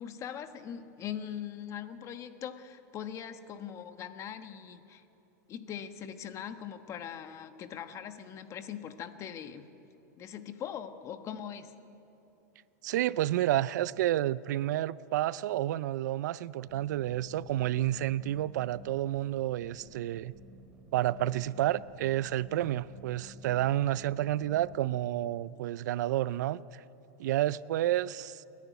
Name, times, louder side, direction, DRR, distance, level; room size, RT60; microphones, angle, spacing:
voice 1, 0.0-5.0 5.5-9.6 10.2-11.7, left 9 dB, 30° left, 1.3 m, -41 dB
voice 2, 12.8-20.3 20.9-26.8 27.2-28.5, right 13 dB, 75° right, 0.5 m, -30 dB
sound 1, 16.7-24.8, right 3 dB, 10° right, 2.9 m, -54 dB
29.5 x 10.5 x 9.4 m
supercardioid pair, 135°, 9 cm